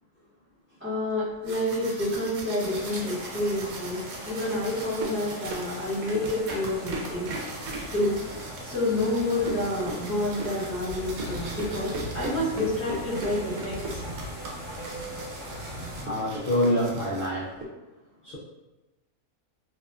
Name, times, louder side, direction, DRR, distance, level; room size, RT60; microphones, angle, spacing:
voice 1, 0.8-4.0 4.3-7.3 7.9-8.2 8.6-14.0, left 1 dB, 10° right, -11 dB, 0.9 m, -29 dB
sound 1, 1.2-17.6, right 2 dB, 80° right, 1.0 m, -39 dB
sound 2, 2.6-16.1, equal, 50° right, 1.1 m, -39 dB
voice 2, 16.0-17.5 18.2-18.4, equal, 60° left, -7 dB, 0.6 m, -26 dB
2.8 x 2.1 x 2.4 m, 1.1 s
omnidirectional pair, 1.5 m